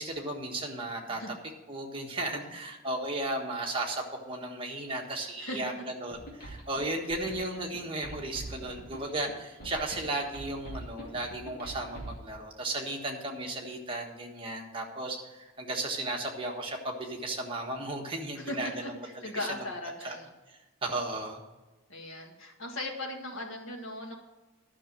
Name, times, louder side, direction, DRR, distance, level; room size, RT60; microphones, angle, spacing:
voice 1, 0.0-1.2 1.7-18.8 19.2-19.3 19.5-19.6 20.0-20.2 20.5-21.4, right 2 dB, 25° right, 0 dB, 1.4 m, -35 dB
voice 2, 2.1-2.5 5.4-5.6 18.4-20.3 21.9-24.1, left 1 dB, 65° left, 1 dB, 1.9 m, -38 dB
sound 1, 6.1-12.2, right 1 dB, 45° left, 2.4 m, -44 dB
11.5 x 6.2 x 7.4 m, 1.2 s
head